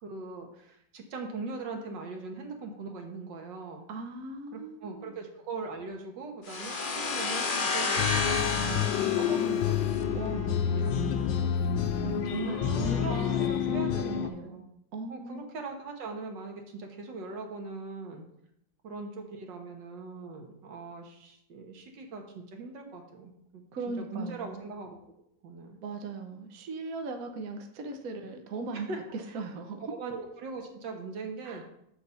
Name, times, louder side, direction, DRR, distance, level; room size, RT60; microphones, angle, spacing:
voice 1, 0.0-3.8 4.5-8.4 8.6-10.3 10.6-11.5 11.8-12.0 12.4-14.6 15.1-18.2 18.8-23.6 24.0-25.0 25.4-25.8 26.4-26.5 28.7-29.0 29.9-31.6, right 3 dB, 85° right, 3 dB, 1.9 m, -41 dB
voice 2, 3.9-5.1 10.1-11.1 12.0-14.6 14.9-15.5 23.7-24.7 25.8-29.8 31.4-31.7, right 3 dB, 55° right, 4 dB, 1.2 m, -39 dB
sound 1, 6.5-10.2, left 4 dB, 40° left, 0.8 m, -31 dB
sound 2, 8.0-14.3, left 8 dB, 90° left, 1.4 m, -28 dB
6.7 x 4.7 x 6.9 m, 0.75 s
omnidirectional pair, 1.9 m